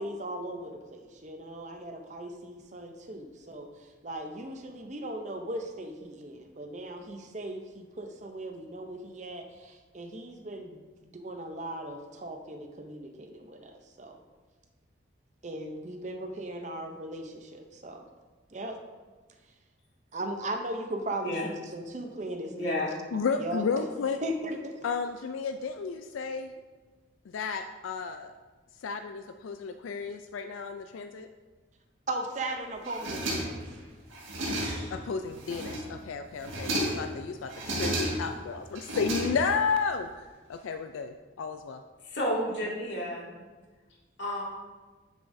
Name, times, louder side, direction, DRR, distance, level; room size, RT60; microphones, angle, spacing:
voice 1, 0.0-14.2 15.4-18.1 18.5-18.8 20.1-22.9 23.4-23.9 24.2-24.8 32.1-33.6, right 1 dB, 35° right, 5 dB, 0.6 m, -38 dB
voice 2, 22.5-22.9 42.0-43.3 44.2-44.4, left 1 dB, 65° left, -4 dB, 2.1 m, -31 dB
voice 3, 23.1-24.2 24.8-26.5 27.3-28.3 28.8-31.3 34.9-40.1 40.5-41.8, left 5 dB, 85° left, 7 dB, 0.4 m, -32 dB
sound 1, 32.8-33.7 34.1-35.0 35.4-36.0 36.4-37.1 37.5-38.4 38.8-39.7, right 1 dB, 85° right, 1.7 m, -32 dB
9.5 x 7.1 x 2.6 m, 1.3 s
head